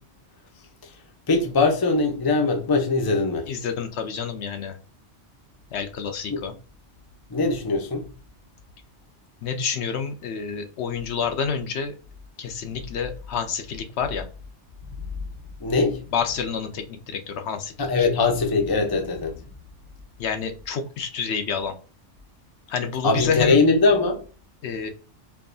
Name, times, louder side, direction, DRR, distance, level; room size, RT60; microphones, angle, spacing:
voice 1, 1.3-3.5 6.3-6.4 7.3-8.1 15.6-16.0 17.8-19.4 23.0-24.2, left 3 dB, 25° left, 0.5 m, -21 dB
voice 2, 3.5-4.8 5.7-6.5 9.4-11.9 12.4-14.3 16.1-18.1 20.2-21.7 22.7-23.6 24.6-24.9, left 6 dB, 70° left, 0.8 m, -28 dB
4.6 x 2.7 x 2.6 m
omnidirectional pair, 1.2 m